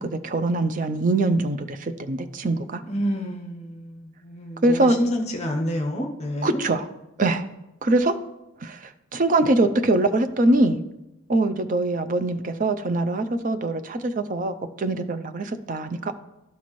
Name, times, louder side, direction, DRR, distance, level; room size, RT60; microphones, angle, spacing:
voice 1, 0.0-2.8 4.6-5.0 6.4-6.9 7.2-7.5 7.8-8.2 8.6-10.8 11.3-16.1, right 2 dB, 40° right, 0.4 m, -23 dB
voice 2, 2.8-6.6, equal, 30° left, 0.8 m, -28 dB
12.5 x 4.2 x 3.1 m
head